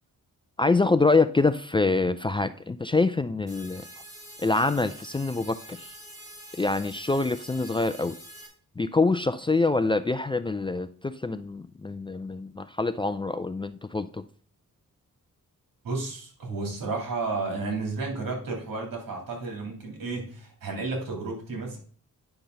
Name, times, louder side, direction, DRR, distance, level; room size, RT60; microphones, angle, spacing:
voice 1, 0.6-3.9 4.4-6.0 6.5-8.2 8.8-14.2, left 3 dB, 15° left, 11 dB, 0.3 m, -25 dB
sound 1, 3.5-8.5, equal, 10° right, 3.0 m, -46 dB
voice 2, 15.8-21.8, right 3 dB, 85° right, 1 dB, 3.3 m, -32 dB
9.9 x 5.9 x 4.0 m, 0.42 s
wide cardioid pair, 125°, 33 cm